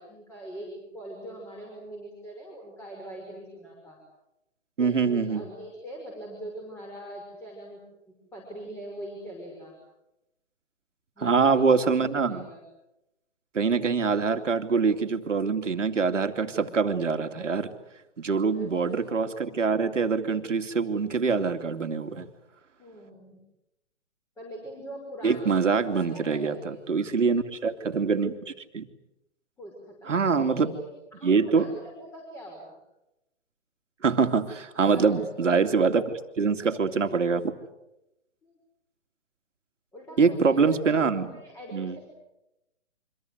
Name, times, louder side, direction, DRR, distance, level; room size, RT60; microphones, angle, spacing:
voice 1, 0.0-4.0 4.8-7.8 8.1-9.8 11.2-12.6 18.5-19.1 22.8-23.4 24.4-26.8 29.6-32.8 34.8-35.8 38.4-38.5 39.9-42.0, right 1 dB, 5° left, 0 dB, 5.9 m, -42 dB
voice 2, 4.8-5.4 11.2-12.4 13.5-17.7 18.2-22.3 25.2-28.9 30.1-30.8 31.2-31.7 34.0-36.0 36.4-37.5 40.2-41.3 41.7-42.0, right 5 dB, 85° right, 7 dB, 2.7 m, -24 dB
27.0 x 25.5 x 8.0 m, 0.90 s
hypercardioid pair, 150°, 36 cm